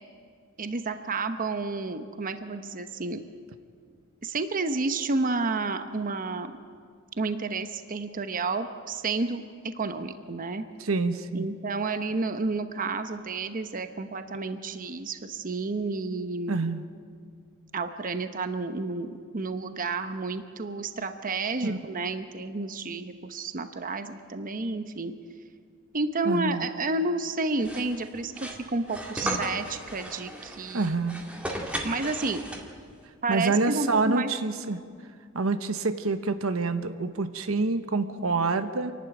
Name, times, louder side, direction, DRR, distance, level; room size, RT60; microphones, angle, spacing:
voice 1, 0.6-3.2 4.2-6.5 7.2-10.6 11.3-16.6 17.7-25.1 25.9-31.0 31.8-32.4 33.2-34.3, right 3 dB, 40° right, 9 dB, 0.9 m, -31 dB
voice 2, 10.8-11.5 16.5-16.8 21.6-21.8 26.2-26.6 29.2-29.5 30.7-31.2 33.3-34.8 35.3-38.9, right 3 dB, 80° right, 10 dB, 1.0 m, -27 dB
sound 1, 27.6-32.9, equal, 5° right, 2.2 m, -36 dB
27.0 x 12.0 x 9.1 m, 2.1 s
head